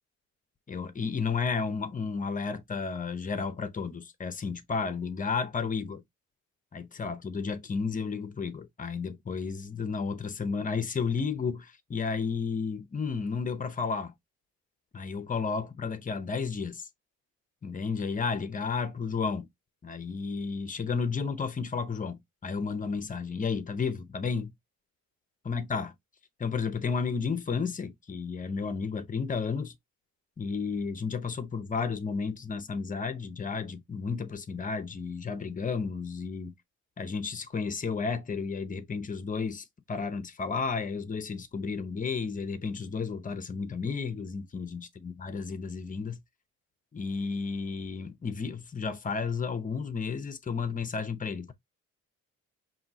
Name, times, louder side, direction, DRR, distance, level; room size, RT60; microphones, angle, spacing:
voice 1, 0.7-6.0 6.7-14.1 14.9-16.9 17.6-19.5 19.8-24.5 25.4-25.9 26.4-29.7 30.4-36.5 37.0-46.2 46.9-51.5, left 5 dB, 25° left, 0.7 m, -32 dB
5.2 x 2.8 x 2.8 m
cardioid pair, 90°, 30 cm